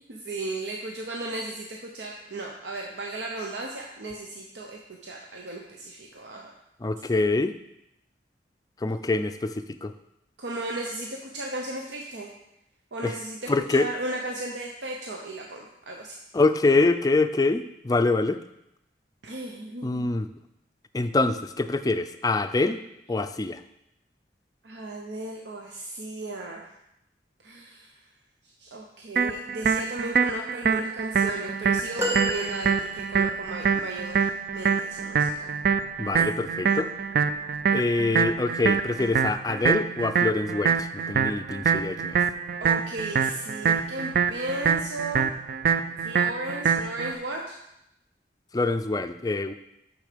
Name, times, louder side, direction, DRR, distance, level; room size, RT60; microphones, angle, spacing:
voice 1, 0.1-6.5 10.4-12.3 12.9-16.2 19.2-20.1 24.6-26.7 27.4-27.9 28.6-34.3 34.5-35.5 42.6-45.3 46.0-47.6, right 2 dB, 85° right, 0 dB, 0.8 m, -35 dB
voice 2, 6.8-7.5 8.8-9.9 13.0-13.2 13.5-13.9 16.3-18.4 19.8-20.3 20.9-22.8 23.1-23.6 36.0-36.9 37.7-42.2 48.5-49.5, left 3 dB, 20° left, 9 dB, 0.4 m, -25 dB
sound 1, 29.2-47.1, right 6 dB, 55° right, 0.4 m, -25 dB
sound 2, 32.0-33.4 35.8-36.0 37.3-37.4, equal, 15° right, 1.0 m, -31 dB
6.5 x 6.3 x 5.1 m, 0.83 s
head